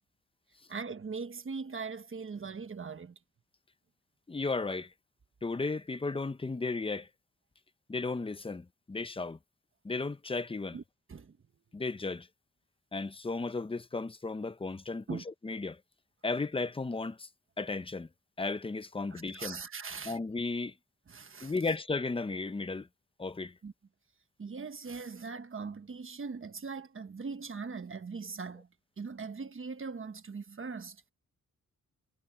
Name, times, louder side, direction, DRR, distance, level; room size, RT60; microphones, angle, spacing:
voice 1, 0.7-3.1 10.7-10.8 11.1-11.4 15.1-15.2 19.1-20.2 21.1-21.5 23.6-23.7 24.4-28.7 29.0-31.0, right 5 dB, 40° right, 1.2 m, -40 dB
voice 2, 4.3-4.9 5.4-7.1 7.9-9.4 9.8-10.8 11.7-12.3 12.9-15.8 16.2-17.3 17.6-18.1 18.4-19.6 20.0-20.7 21.4-22.9 23.2-23.6, left 3 dB, 15° left, 0.6 m, -34 dB
wide cardioid pair, 165°, 32 cm